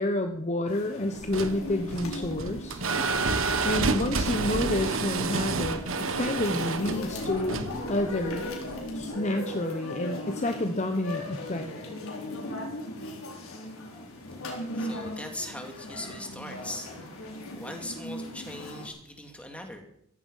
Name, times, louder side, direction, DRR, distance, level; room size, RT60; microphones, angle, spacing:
voice 1, 0.0-2.8 3.6-7.6 7.9-8.5 8.9-11.7, left 1 dB, 35° left, 6 dB, 1.0 m, -29 dB
sound 1, 0.7-18.9, left 1 dB, 80° left, 4.4 m, -38 dB
sound 2, 1.2-9.1, right 3 dB, 65° right, 1.4 m, -30 dB
voice 2, 14.7-17.1 17.5-19.8, left 1 dB, 5° left, 3 dB, 2.7 m, -40 dB
15.5 x 15.0 x 5.6 m, 0.75 s
head